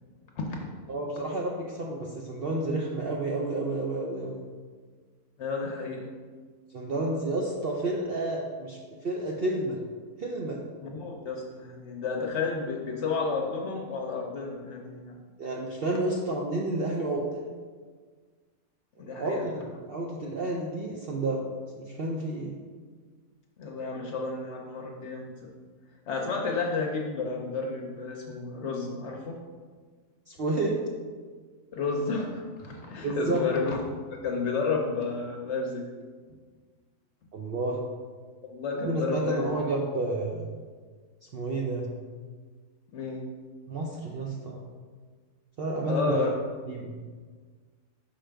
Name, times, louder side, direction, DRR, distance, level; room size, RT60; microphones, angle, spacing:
voice 1, 0.4-0.7 5.4-6.1 10.8-15.2 19.0-19.4 23.6-25.5 26.1-29.4 31.7-33.8 34.1-35.8 38.5-39.5 42.9-43.3 45.9-46.3, left 4 dB, 60° left, 1 dB, 0.8 m, -31 dB
voice 2, 0.9-4.4 6.7-9.8 10.2-10.6 15.4-17.4 19.0-21.5 21.8-22.5 30.3-30.8 33.0-33.5 37.3-37.8 38.8-40.5 41.3-41.9 43.7-44.6 45.6-46.1 46.7-46.9, right 2 dB, 60° right, -2 dB, 0.6 m, -30 dB
5.7 x 4.9 x 3.3 m, 1.5 s
omnidirectional pair, 1.6 m